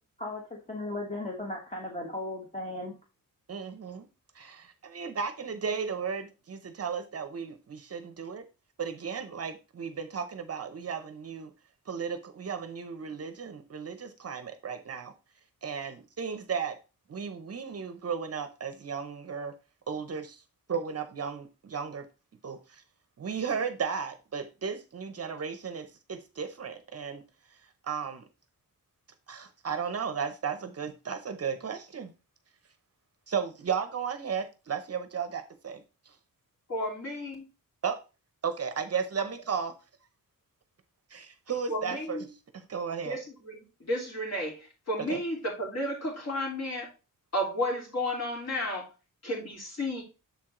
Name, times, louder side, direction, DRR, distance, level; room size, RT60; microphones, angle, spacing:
voice 1, 0.7-2.9, left 2 dB, 20° left, 1.1 m, -36 dB
voice 2, 3.5-4.1 4.3-8.5 8.8-11.5 11.9-15.1 15.6-16.8 17.1-19.5 19.9-20.4 20.7-22.1 22.4-22.8 23.2-27.2 27.8-28.2 29.3-32.1 33.3-35.8 37.8-38.0 38.4-39.8 41.1-42.3 42.5-43.2 45.1-45.2, right 6 dB, 45° right, 0.7 m, -34 dB
voice 3, 36.7-37.4 41.7-42.3 43.0-46.9 47.3-48.9 49.2-50.0, left 1 dB, 45° left, 3.1 m, -32 dB
7.0 x 4.5 x 3.7 m
wide cardioid pair, 175°, 36 cm